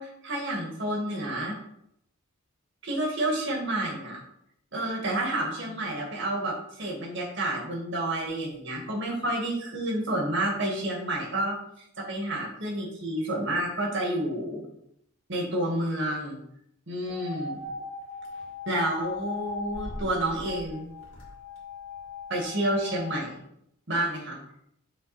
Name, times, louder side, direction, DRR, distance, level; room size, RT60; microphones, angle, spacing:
voice 1, 0.0-1.6 2.8-4.2 4.7-11.6 12.1-14.7 15.3-16.4 16.9-17.6 18.7-20.9 22.3-23.3 23.9-24.4, right 1 dB, 60° right, -1 dB, 1.8 m, -29 dB
sound 1, 17.1-23.2, left 4 dB, 80° left, 1.9 m, -39 dB
6.2 x 4.0 x 4.2 m, 0.76 s
head